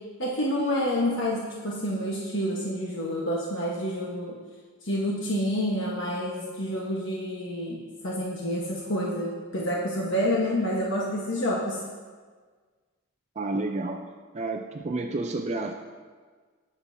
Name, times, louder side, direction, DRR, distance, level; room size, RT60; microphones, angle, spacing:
voice 1, 0.2-4.3 4.8-11.8, equal, 60° left, -4 dB, 1.2 m, -28 dB
voice 2, 13.4-14.0 14.3-15.7, right 2 dB, 30° right, 4 dB, 0.4 m, -30 dB
19.0 x 7.1 x 2.7 m, 1.5 s
head